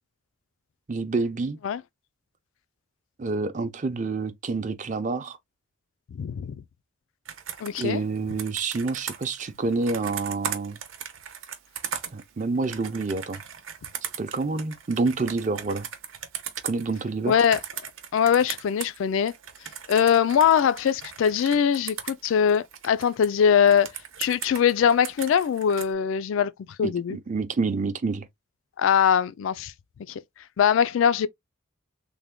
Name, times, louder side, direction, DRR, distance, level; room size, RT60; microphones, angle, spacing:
voice 1, 0.9-1.6 3.2-5.4 7.8-10.8 12.1-13.4 14.2-15.9 16.6-17.4 26.8-28.3, right 3 dB, 35° right, 0.5 m, -28 dB
voice 2, 6.1-6.5 7.6-8.0 17.3-17.6 18.1-19.3 19.9-23.9 24.2-26.5 26.8-27.2 28.8-29.7 30.1-30.2 30.6-31.3, left 8 dB, 75° left, 0.3 m, -22 dB
Computer keyboard, 7.3-19.0 19.3-23.3 23.7-25.9, right 8 dB, 75° right, 0.8 m, -38 dB
3.4 x 2.2 x 3.5 m
head